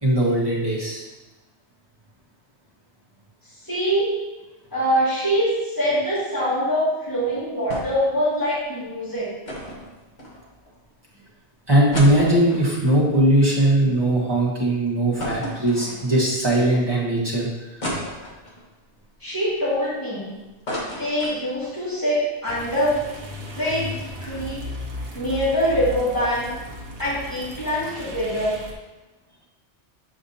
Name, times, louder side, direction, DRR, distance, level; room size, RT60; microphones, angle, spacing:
voice 1, 0.0-1.0 11.7-17.5, right 1 dB, 20° right, -6 dB, 1.6 m, -19 dB
voice 2, 3.6-4.2 4.7-9.3 19.2-20.3 20.7-23.0 23.6-23.9 24.2-24.7 25.1-26.5 27.0-28.5, equal, 15° left, -9 dB, 2.2 m, -24 dB
sound 1, 7.7-8.1 8.4-8.5 9.4-10.7 11.2-11.3 11.7-14.1 14.5-14.6 15.2-16.3 16.8-16.9 17.8-18.6 19.2-20.2 20.4-21.8 22.1-22.2 22.5-22.7, equal, 40° left, 1.4 m, -33 dB
sound 2, 22.5-28.7, equal, 60° right, 1.1 m, -35 dB
7.6 x 4.9 x 2.8 m, 1.1 s
omnidirectional pair, 1.2 m